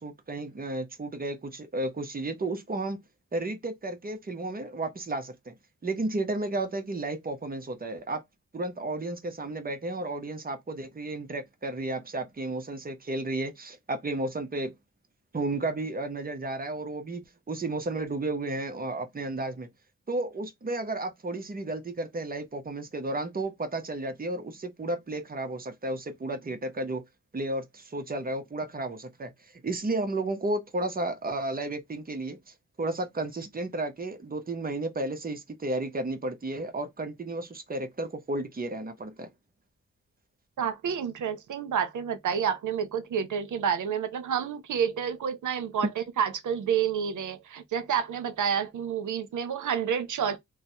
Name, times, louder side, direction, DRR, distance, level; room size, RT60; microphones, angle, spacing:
voice 1, 0.0-3.0 3.3-5.5 5.8-8.2 8.5-14.7 15.3-19.7 20.1-27.0 27.3-39.3, right 2 dB, 30° right, 0.7 m, -33 dB
voice 2, 40.6-50.4, right 7 dB, 85° right, 0.7 m, -29 dB
3.1 x 2.0 x 2.6 m
wide cardioid pair, 125°, 30 cm